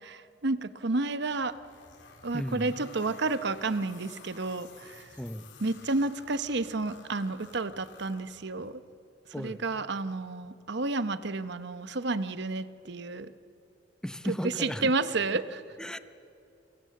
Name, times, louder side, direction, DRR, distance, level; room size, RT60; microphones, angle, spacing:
voice 1, 0.0-1.5 2.2-5.1 5.6-8.8 9.4-13.3 14.2-15.6, right 3 dB, 65° right, 12 dB, 0.9 m, -31 dB
sound 1, 1.2-8.8, left 4 dB, 75° left, 3.9 m, -53 dB
voice 2, 2.3-2.7 5.2-5.4 9.3-9.6 14.0-14.9 15.8-16.0, equal, 5° left, 11 dB, 0.7 m, -35 dB
29.5 x 23.5 x 7.8 m, 2.8 s
head